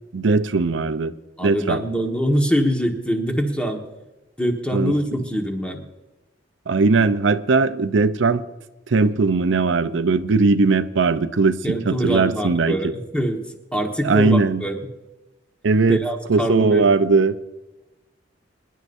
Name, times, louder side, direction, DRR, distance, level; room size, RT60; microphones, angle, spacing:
voice 1, 0.1-1.1 1.4-1.8 4.7-4.9 6.7-8.4 8.9-12.9 14.0-14.6 15.6-16.0 16.3-17.4, right 4 dB, 85° right, 12 dB, 0.6 m, -19 dB
voice 2, 1.4-3.8 4.4-5.8 11.6-13.4 13.7-14.8 15.9-16.8, equal, 5° left, 2 dB, 1.5 m, -23 dB
25.0 x 11.0 x 2.7 m, 1.0 s
head